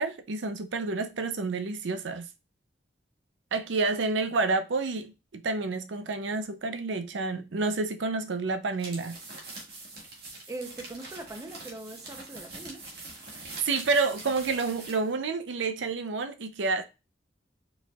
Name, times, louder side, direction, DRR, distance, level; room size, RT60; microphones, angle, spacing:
voice 1, 0.0-2.3 3.5-9.2 13.6-16.8, right 3 dB, 80° right, 0.5 m, -29 dB
sound 1, 8.7-15.1, right 2 dB, 60° right, 1.6 m, -44 dB
voice 2, 10.5-12.9, right 2 dB, 20° right, 0.6 m, -41 dB
4.7 x 4.1 x 2.3 m
head